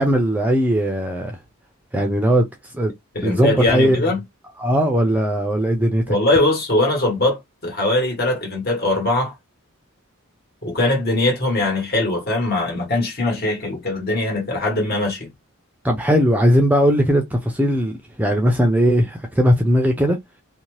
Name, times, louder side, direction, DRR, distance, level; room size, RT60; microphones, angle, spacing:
voice 1, 0.0-1.4 1.9-2.5 2.7-2.9 3.2-4.0 4.6-6.2 15.8-20.2, equal, 5° right, 0.5 m, -18 dB
voice 2, 3.1-4.2 6.1-9.3 10.6-15.3, left 2 dB, 45° left, 1.4 m, -21 dB
2.7 x 2.1 x 3.1 m
head